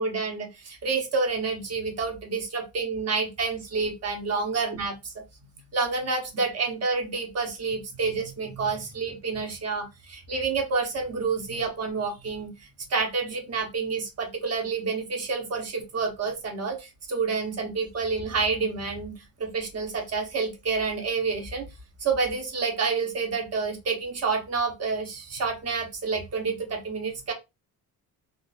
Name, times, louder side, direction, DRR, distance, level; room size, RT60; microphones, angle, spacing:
voice 1, 0.0-5.1 5.7-12.5 12.9-19.1 19.4-21.7 22.0-27.3, right 4 dB, 45° right, 2 dB, 0.9 m, -28 dB
3.6 x 2.5 x 2.3 m, 0.24 s
cardioid pair, 145°, 36 cm